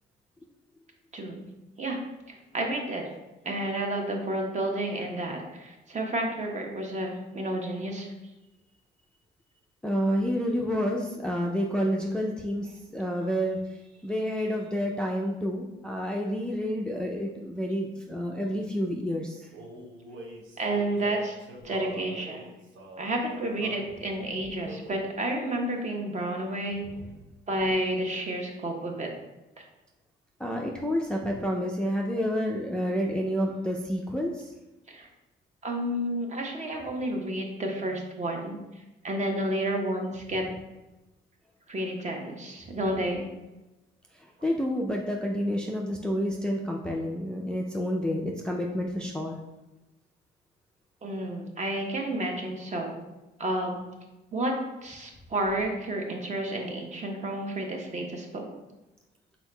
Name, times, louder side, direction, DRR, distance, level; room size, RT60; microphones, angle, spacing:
voice 1, 1.1-2.0 2.3-3.0 3.4-8.1 20.6-21.4 21.6-22.4 23.0-26.9 27.5-29.1 34.9-35.1 35.6-40.4 41.7-43.3 51.0-53.0 53.4-53.8 54.3-54.5 54.8-58.4, right 1 dB, 35° right, 1 dB, 0.8 m, -31 dB
voice 2, 9.8-13.6 14.0-19.5 30.4-34.5 44.2-49.4, equal, 5° left, 0 dB, 0.4 m, -29 dB
Male singing, 19.5-23.9 24.6-25.1 25.7-26.0 26.2-27.2, right 2 dB, 75° right, 0.8 m, -44 dB
4.4 x 3.9 x 2.2 m, 1.0 s
cardioid pair, 90°, 20 cm